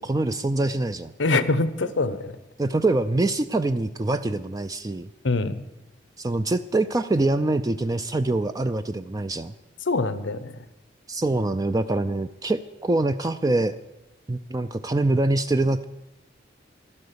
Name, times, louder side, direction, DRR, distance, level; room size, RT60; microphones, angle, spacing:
voice 1, 0.0-1.1 2.6-5.1 6.2-9.5 11.1-13.8 14.3-15.8, right 2 dB, 20° right, 9 dB, 0.4 m, -24 dB
voice 2, 1.2-2.3 5.2-5.5 9.9-10.6, left 3 dB, 90° left, 13 dB, 0.9 m, -24 dB
13.0 x 12.0 x 6.9 m, 0.99 s
head